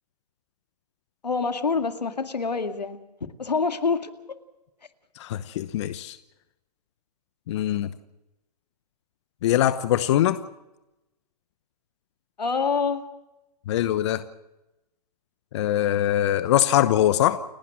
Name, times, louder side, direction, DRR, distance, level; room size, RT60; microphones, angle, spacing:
voice 1, 1.2-3.0 3.4-4.4 12.4-13.0, left 4 dB, 85° left, 8 dB, 2.2 m, -26 dB
voice 2, 5.2-6.2 7.5-7.9 9.4-10.4 13.7-14.2 15.5-17.4, left 12 dB, 45° left, 13 dB, 1.0 m, -22 dB
29.5 x 12.0 x 7.5 m, 0.94 s
hypercardioid pair, 130°, 21 cm